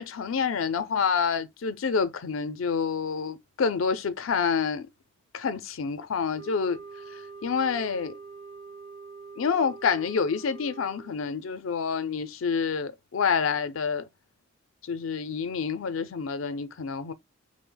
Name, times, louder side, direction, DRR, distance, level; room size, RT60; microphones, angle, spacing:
voice 1, 0.0-4.9 5.3-6.8 7.1-8.2 9.4-14.1 14.9-17.1, left 6 dB, 75° left, 0.5 m, -28 dB
sound 1, 6.3-11.2, right 4 dB, 30° right, 0.5 m, -44 dB
2.7 x 2.1 x 3.7 m
head